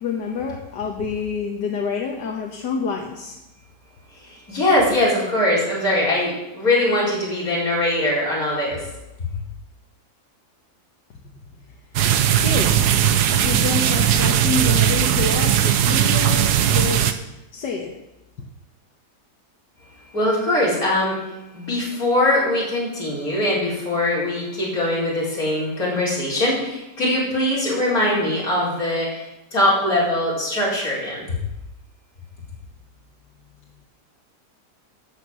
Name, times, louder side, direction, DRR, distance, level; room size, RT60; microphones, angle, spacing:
voice 1, 0.0-3.4 12.1-12.8 13.4-17.2 17.5-17.9, left 5 dB, 90° left, 1 dB, 1.8 m, -27 dB
voice 2, 4.3-8.8 20.1-21.2 21.5-29.2 29.5-31.3, left 1 dB, 55° left, -7 dB, 5.2 m, -21 dB
sound 1, 12.0-17.1, right 10 dB, 75° right, 1.3 m, -18 dB
12.5 x 8.1 x 6.2 m, 0.96 s
omnidirectional pair, 1.8 m